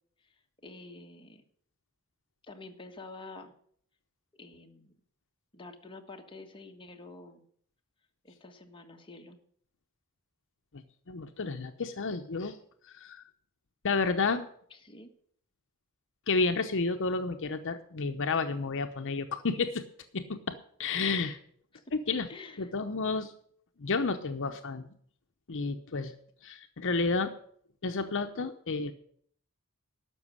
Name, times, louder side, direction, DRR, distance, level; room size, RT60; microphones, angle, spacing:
voice 1, 0.6-1.4 2.4-3.5 4.4-4.9 5.5-7.4 8.2-9.4 14.7-15.1 21.7-21.8 22.3-22.7, left 3 dB, 25° left, 3 dB, 1.5 m, -48 dB
voice 2, 11.1-12.6 12.9-13.2 13.8-14.5 16.3-19.8 20.1-21.4 21.9-22.3 22.6-23.3 23.8-24.9 25.5-26.1 26.4-27.3 27.8-28.9, left 4 dB, 60° left, 7 dB, 0.8 m, -31 dB
12.5 x 6.2 x 9.7 m, 0.62 s
head